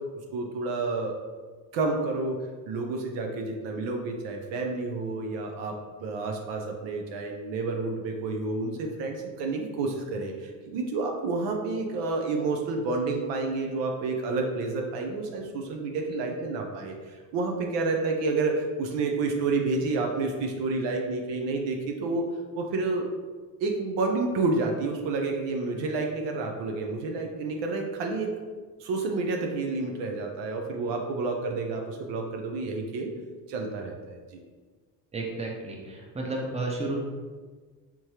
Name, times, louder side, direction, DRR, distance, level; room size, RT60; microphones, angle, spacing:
voice 1, 0.3-1.2 1.7-22.3 22.5-23.1 23.6-28.3 28.8-33.1 33.5-34.4, right 3 dB, 70° right, 2 dB, 0.7 m, -29 dB
voice 2, 35.1-37.0, right 2 dB, 15° right, -1 dB, 0.7 m, -32 dB
3.6 x 3.0 x 2.8 m, 1.5 s
supercardioid pair, 65°, 45 cm